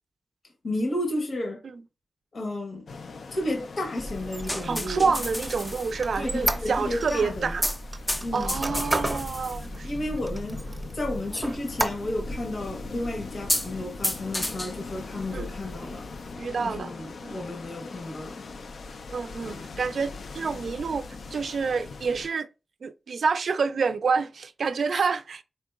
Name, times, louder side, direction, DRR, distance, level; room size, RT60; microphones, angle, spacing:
voice 1, 0.6-1.6 2.3-2.8 3.3-5.1 6.2-7.5 8.2-8.6 9.8-10.6 10.9-16.0 16.6-18.4, left 1 dB, 65° left, 1.0 m, -32 dB
sound 1, 2.9-22.3, left 4 dB, 85° left, 0.4 m, -41 dB
sound 2, 4.0-16.4, left 1 dB, 15° left, 0.3 m, -34 dB
Squeak, 4.2-7.2 7.7-9.3 9.7-9.8 10.2-10.9 11.3-12.3, right 2 dB, 25° right, 0.6 m, -31 dB
voice 2, 4.6-7.6 8.3-9.9 15.3-15.5 16.4-16.9 17.2-17.4 19.1-22.5 22.8-25.4, right 5 dB, 75° right, 0.3 m, -28 dB
4.3 x 3.7 x 2.3 m
wide cardioid pair, 140°, 0 cm